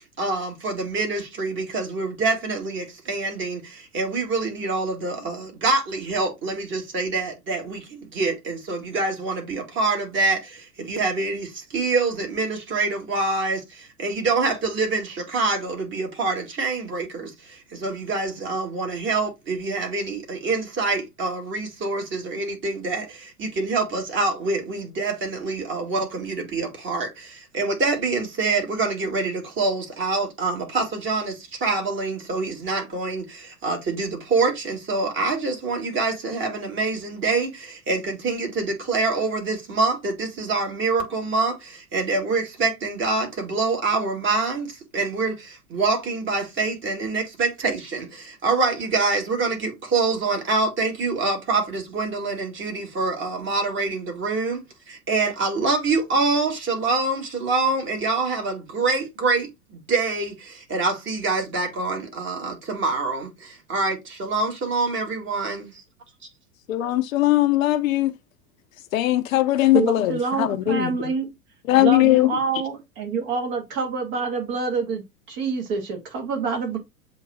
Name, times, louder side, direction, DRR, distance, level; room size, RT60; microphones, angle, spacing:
voice 1, 0.2-65.7, right 3 dB, 25° right, 2.1 m, -26 dB
voice 2, 66.7-68.1 68.9-70.9 71.7-72.4, left 15 dB, 60° left, 0.7 m, -20 dB
voice 3, 69.7-71.2 71.8-75.0 75.3-76.8, right 5 dB, 45° right, 2.1 m, -26 dB
7.7 x 3.0 x 2.3 m
hypercardioid pair, 105°, 47 cm